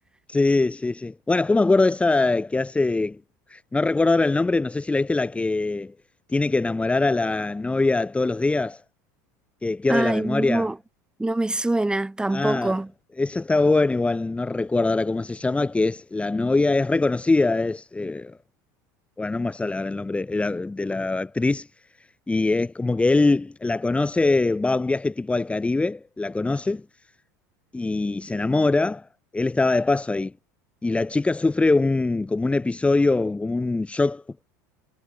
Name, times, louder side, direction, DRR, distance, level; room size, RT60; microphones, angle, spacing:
voice 1, 0.3-3.2 3.5-5.9 6.3-8.8 9.6-10.7 12.3-12.8 13.2-18.4 19.2-21.7 22.3-26.8 27.7-29.1 29.3-30.3 30.8-34.2, left 3 dB, 10° left, 4.0 m, -23 dB
voice 2, 9.9-10.8 11.2-12.9, right 2 dB, 10° right, 7.1 m, -24 dB
hypercardioid pair, 95°, 9 cm